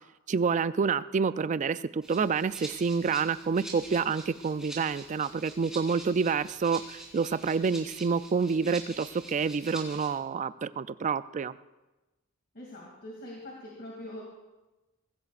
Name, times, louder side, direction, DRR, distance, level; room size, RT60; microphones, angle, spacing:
voice 1, 0.3-11.5, right 5 dB, 35° right, 14 dB, 0.4 m, -28 dB
Rattle (instrument), 2.0-10.1, right 2 dB, 5° right, 3.6 m, -46 dB
voice 2, 12.5-14.2, left 1 dB, 45° left, -2 dB, 2.6 m, -43 dB
22.0 x 16.0 x 2.5 m, 1.1 s
head